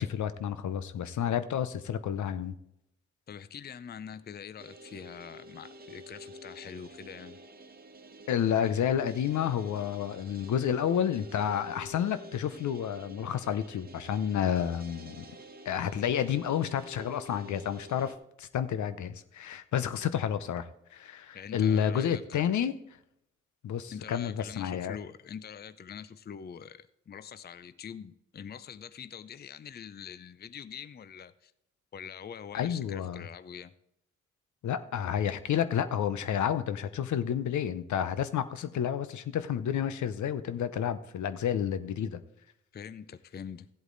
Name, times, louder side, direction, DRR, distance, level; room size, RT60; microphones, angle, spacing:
voice 1, 0.0-2.5 8.3-15.3 15.6-22.7 23.6-25.0 32.5-33.2 34.6-42.2, left 9 dB, 65° left, 0.7 m, -30 dB
voice 2, 3.3-7.4 21.3-22.6 23.9-31.5 31.9-33.7 42.7-43.7, left 7 dB, 30° left, 0.5 m, -44 dB
sound 1, 4.6-18.1, right 1 dB, 30° right, 1.1 m, -49 dB
14.5 x 8.0 x 3.9 m
supercardioid pair, 45°, 31 cm